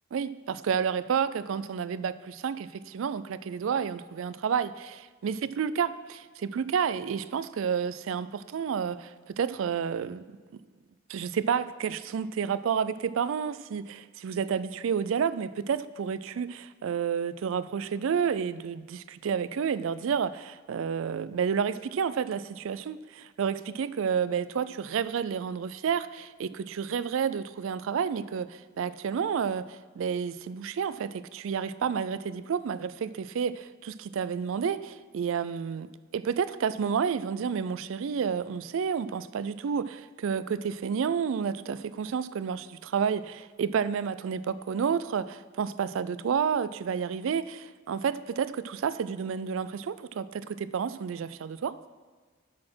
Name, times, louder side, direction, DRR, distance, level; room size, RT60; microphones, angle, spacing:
voice 1, 0.1-10.2 11.1-35.9 36.1-51.8, right 7 dB, 70° right, 16 dB, 0.3 m, -30 dB
12.0 x 4.2 x 6.1 m, 1.4 s
head